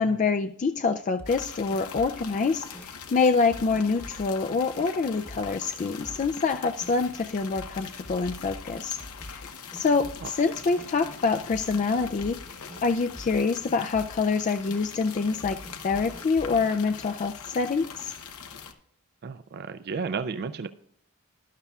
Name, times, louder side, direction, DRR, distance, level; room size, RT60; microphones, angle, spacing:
voice 1, 0.0-12.4 12.8-15.6 15.8-18.1, left 4 dB, 35° left, 7 dB, 0.3 m, -26 dB
sound 1, 1.2-2.3 2.7-2.9 3.5-4.3 4.8-4.9 5.3-5.5 5.8-6.3 6.8-7.0 7.6-9.5 9.7-10.5 10.8-10.9 11.5-12.8 13.1-13.4 13.7-14.2 14.7-14.8 15.4-16.7, equal, 5° left, 1.0 m, -45 dB
sound 2, 1.3-18.7, left 6 dB, 90° left, 1.0 m, -43 dB
voice 2, 19.2-20.7, right 5 dB, 50° right, 11 dB, 0.4 m, -32 dB
12.5 x 11.5 x 2.3 m, 0.70 s
head